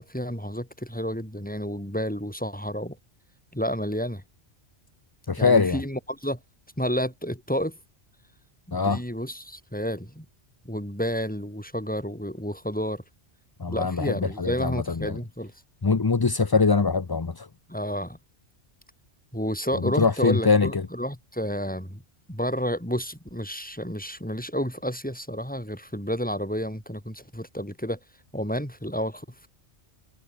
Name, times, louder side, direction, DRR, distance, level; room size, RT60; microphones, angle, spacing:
voice 1, 0.0-3.0 3.5-4.2 5.4-6.4 6.8-7.8 8.7-10.2 10.6-13.0 13.7-15.5 17.7-18.2 19.3-22.0 22.3-28.0 28.3-29.5, equal, 5° left, 6.8 m, -30 dB
voice 2, 5.3-5.8 8.7-9.0 13.6-15.2 15.8-17.5 19.7-20.9, left 4 dB, 25° left, 0.6 m, -23 dB
omnidirectional pair, 1.2 m